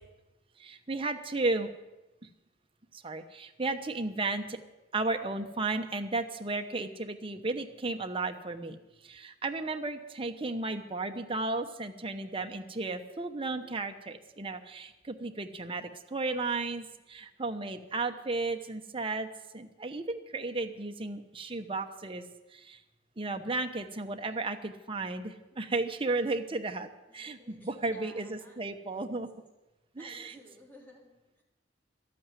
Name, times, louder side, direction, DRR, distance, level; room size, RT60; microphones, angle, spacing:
voice 1, 0.6-1.7 2.9-4.6 4.9-8.8 9.0-19.3 19.5-22.2 22.5-22.8 23.2-29.3 29.9-30.3, right 3 dB, 30° right, 5 dB, 1.0 m, -34 dB
voice 2, 24.1-24.5 27.1-28.6 28.9-29.3 30.0-31.4, equal, 10° left, -2 dB, 3.3 m, -56 dB
12.0 x 8.6 x 9.3 m, 1.0 s
head